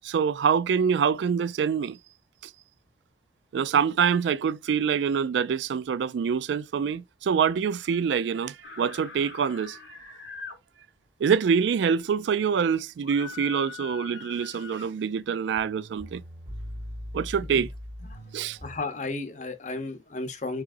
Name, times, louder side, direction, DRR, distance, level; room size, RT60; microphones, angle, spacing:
voice 1, 0.0-2.0 3.5-9.8 11.2-16.2 17.1-17.7 18.3-18.6, right 7 dB, 70° right, 0.3 m, -25 dB
sound 1, 8.6-10.6 13.0-14.9, left 5 dB, 80° left, 1.2 m, -42 dB
sound 2, 15.2-15.3 15.5-18.8, equal, 35° right, 1.4 m, -40 dB
voice 2, 18.0-20.6, left 3 dB, 40° left, 0.8 m, -34 dB
4.8 x 4.0 x 2.5 m
head